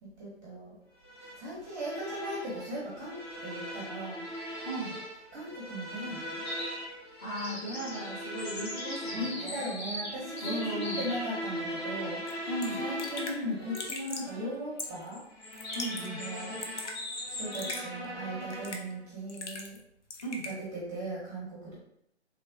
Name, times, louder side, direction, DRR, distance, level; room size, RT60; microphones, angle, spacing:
voice 1, 0.0-0.7 1.4-4.2 5.3-6.4 9.1-15.2 16.2-16.6 17.3-19.8 20.4-21.7, equal, 15° right, -6 dB, 0.6 m, -38 dB
sound 1, 1.0-19.0, equal, 5° left, 1.0 m, -41 dB
voice 2, 4.6-5.0 7.2-9.6 10.4-11.0 12.5-12.8 15.7-16.2 20.2-20.5, right 1 dB, 35° left, -4 dB, 0.6 m, -36 dB
sound 2, 6.5-7.0 7.4-11.3 14.8-17.9, left 1 dB, 65° left, 1.0 m, -40 dB
Raindrop / Drip, 12.3-12.4 12.6-12.7 13.0-13.4 13.7-14.3 14.8-15.1 15.5-16.1 16.4-17.0 17.5-17.8 18.5-18.9 19.3-19.8 20.1-20.5, left 3 dB, 85° left, 0.6 m, -39 dB
3.0 x 2.0 x 2.5 m, 0.72 s
figure-of-eight pair, 125°, 34 cm